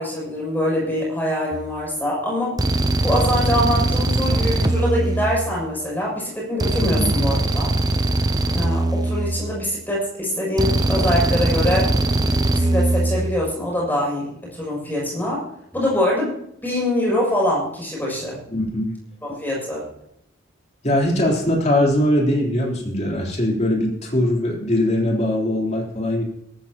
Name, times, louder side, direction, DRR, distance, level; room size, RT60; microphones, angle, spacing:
voice 1, 0.0-2.6 3.0-7.7 8.5-11.9 12.5-15.4 15.7-16.3 16.6-18.4 19.2-19.8, left 1 dB, 10° left, -4 dB, 6.9 m, -24 dB
sound 1, 1.5-1.8 2.6-5.9 6.6-9.9 10.6-13.5, right 2 dB, 20° right, 0.7 m, -21 dB
voice 2, 6.8-7.1 18.5-18.9 20.8-26.2, left 1 dB, 35° left, -2 dB, 3.7 m, -21 dB
22.0 x 14.0 x 3.0 m, 0.75 s
head